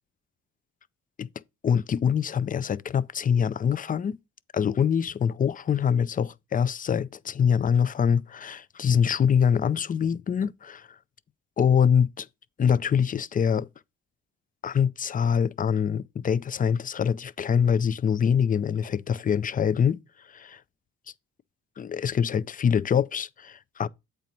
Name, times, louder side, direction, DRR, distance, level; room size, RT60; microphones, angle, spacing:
voice 1, 1.6-4.2 4.5-10.9 11.6-12.3 12.6-13.7 14.6-20.0 21.8-23.9, left 7 dB, 30° left, 0.4 m, -24 dB
8.1 x 4.5 x 5.2 m
cardioid pair, 90°, 30 cm